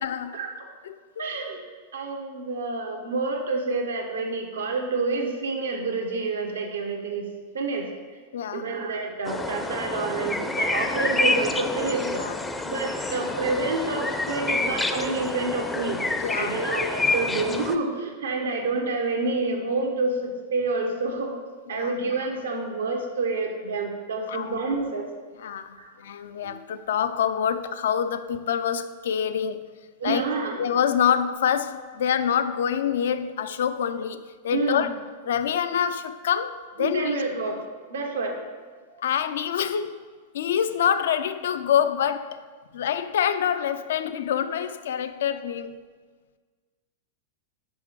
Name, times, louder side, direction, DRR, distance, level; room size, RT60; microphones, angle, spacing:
voice 1, 0.0-0.4 0.8-1.2 8.3-8.7 12.2-12.3 16.2-16.6 21.7-21.9 24.3-24.6 25.4-29.6 30.0-30.3 30.6-34.9 35.2-37.2 39.0-40.0 40.3-42.4 42.7-45.7, left 8 dB, 70° left, 12 dB, 0.4 m, -26 dB
voice 2, 1.2-1.6 1.9-7.3 7.5-7.9 8.5-12.2 12.6-16.0 16.4-21.3 21.7-25.1 25.8-25.9 26.4-26.6 30.0-30.6 34.5-34.8 36.8-38.4 38.9-39.0, right 3 dB, 75° right, 2 dB, 1.1 m, -28 dB
sound 1, 9.2-17.8, left 2 dB, 10° left, 0.5 m, -28 dB
6.1 x 5.5 x 4.6 m, 1.5 s
hypercardioid pair, 100°, 0 cm